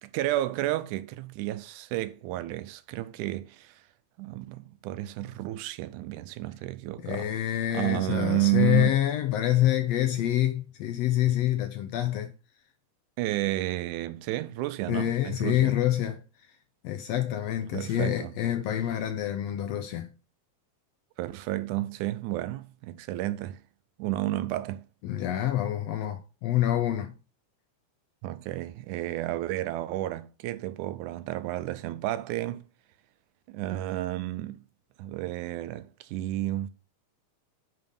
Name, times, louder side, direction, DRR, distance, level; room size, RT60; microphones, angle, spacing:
voice 1, 0.1-3.8 4.2-7.3 7.7-9.0 13.2-15.8 17.7-18.3 21.2-23.6 24.0-24.9 28.2-32.6 33.5-34.6 35.0-36.7, right 15 dB, 90° right, 2.1 m, -31 dB
voice 2, 7.0-12.3 14.9-16.2 16.8-20.1 25.0-27.1, left 12 dB, 80° left, 1.5 m, -27 dB
8.9 x 3.8 x 5.3 m
omnidirectional pair, 3.5 m